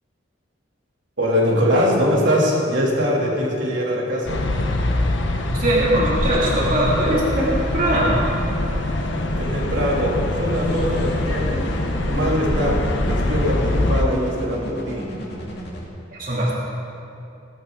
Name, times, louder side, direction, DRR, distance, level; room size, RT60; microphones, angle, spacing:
voice 1, 1.2-4.4 9.2-11.7 12.0-15.1, equal, 75° right, -3 dB, 3.2 m, -22 dB
sound 1, 4.3-14.0, left 1 dB, 75° left, 1.2 m, -23 dB
voice 2, 5.5-8.3 16.1-16.6, right 1 dB, 45° right, -6 dB, 3.0 m, -21 dB
sound 2, 10.5-15.9, equal, 55° left, 2.4 m, -34 dB
20.0 x 11.5 x 4.0 m, 2.7 s
head